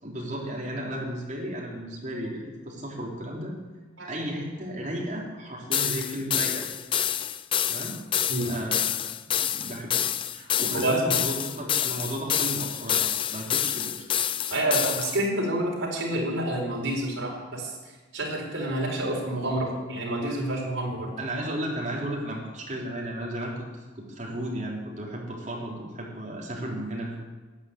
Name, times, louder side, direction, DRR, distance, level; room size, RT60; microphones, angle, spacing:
voice 1, 0.0-3.5 4.0-6.7 7.7-8.0 8.4-9.0 9.4-9.9 10.3-14.0 21.2-27.2, right 1 dB, 35° right, -3 dB, 3.5 m, -34 dB
sound 1, 5.7-15.2, left 10 dB, 25° left, 0.3 m, -27 dB
voice 2, 10.7-11.2 14.5-17.7 18.1-21.1, right 1 dB, 75° right, -2 dB, 4.3 m, -28 dB
11.5 x 9.2 x 8.6 m, 1.3 s
head